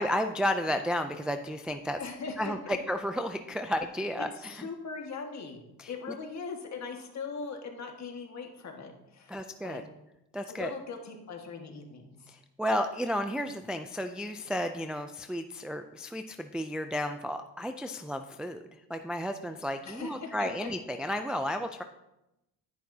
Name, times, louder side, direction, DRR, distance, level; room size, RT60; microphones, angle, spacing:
voice 1, 0.0-2.0 2.4-4.7 5.8-5.9 9.3-9.8 10.3-10.7 12.3-18.6 18.9-21.8, equal, ahead, 6 dB, 0.3 m, -32 dB
voice 2, 2.0-2.8 4.2-9.8 10.5-12.4 19.8-20.7, left 5 dB, 45° left, 2 dB, 1.7 m, -40 dB
11.0 x 10.0 x 2.8 m, 0.90 s
cardioid pair, 120°, 38 cm